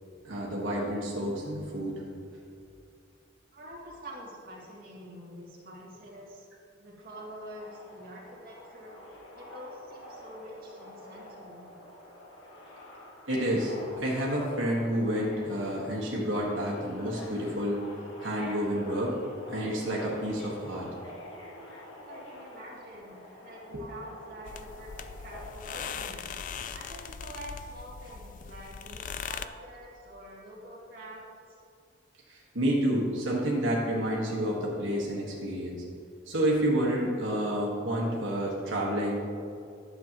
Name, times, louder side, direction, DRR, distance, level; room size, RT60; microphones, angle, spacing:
voice 1, 0.2-2.0 13.3-17.8 18.2-19.1 19.5-20.9 23.7-23.9 32.3-35.8 36.3-39.4, equal, 90° right, -4 dB, 1.5 m, -29 dB
voice 2, 3.5-6.5 6.8-9.0 9.3-11.7 22.0-23.6 23.9-26.3 26.7-31.2, equal, 50° right, -5 dB, 2.1 m, -46 dB
Subway metro underground, 7.1-26.1, left 1 dB, 80° left, 2.1 m, -47 dB
sound 1, 24.5-29.5, left 7 dB, 40° left, 0.3 m, -40 dB
11.5 x 7.4 x 2.9 m, 2.5 s
head